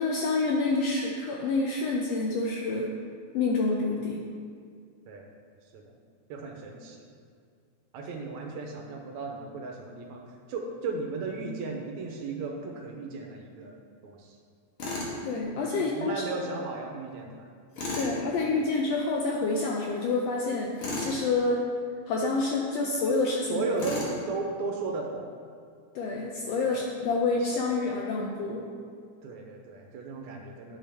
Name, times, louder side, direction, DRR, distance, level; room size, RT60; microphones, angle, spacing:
voice 1, 0.0-2.9 3.3-4.3 15.2-16.2 17.9-21.6 22.1-23.6 23.9-24.0 25.9-28.6, left 3 dB, 80° left, -1 dB, 1.5 m, -28 dB
voice 2, 6.3-7.1 7.9-10.2 10.5-13.8 14.0-14.4 15.7-17.3 18.4-18.6 23.5-25.3 26.6-26.8 29.2-30.8, right 3 dB, 75° right, 2 dB, 1.9 m, -35 dB
Tools, 14.8-15.2 17.7-18.1 20.8-21.2 23.8-24.2, left 2 dB, 55° left, 1.8 m, -33 dB
10.0 x 5.5 x 3.4 m, 2.2 s
omnidirectional pair, 3.5 m